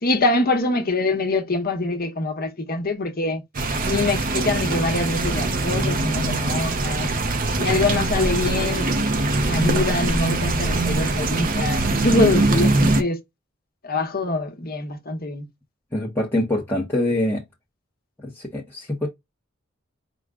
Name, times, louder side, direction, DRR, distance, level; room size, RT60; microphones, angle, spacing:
voice 1, 0.0-3.4 3.9-7.1 7.6-8.9 9.4-13.2 13.8-15.4, left 2 dB, 45° left, 1.0 m, -24 dB
sound 1, 3.5-13.0, right 2 dB, 45° right, 0.6 m, -22 dB
voice 2, 15.9-17.4 18.2-19.1, left 1 dB, 10° left, 0.9 m, -24 dB
4.9 x 2.2 x 3.6 m
head